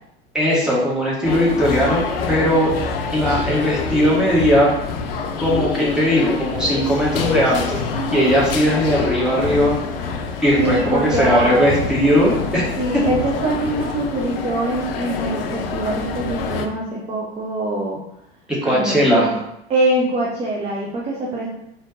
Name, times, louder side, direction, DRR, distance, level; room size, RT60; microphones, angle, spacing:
voice 1, 0.3-2.8 3.1-4.7 5.4-7.8 8.1-9.8 10.4-12.7 18.5-19.3, equal, ahead, -6 dB, 1.3 m, -18 dB
sound 1, 1.2-16.7, left 5 dB, 60° left, 0.5 m, -26 dB
voice 2, 10.6-11.7 12.8-18.0 18.6-19.3 19.7-21.5, right 2 dB, 20° right, -3 dB, 0.6 m, -23 dB
4.1 x 2.9 x 2.6 m, 0.82 s
figure-of-eight pair, 80°, 33 cm